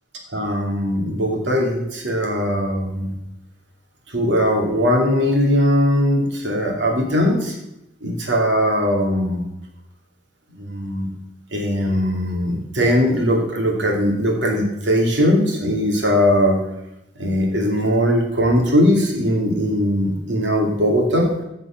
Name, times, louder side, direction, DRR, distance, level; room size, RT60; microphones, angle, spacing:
voice 1, 0.3-3.1 4.1-7.5 8.0-9.4 10.6-11.1 11.5-16.6 17.2-21.3, equal, 90° right, 1 dB, 2.8 m, -19 dB
15.0 x 5.4 x 5.9 m, 0.87 s
head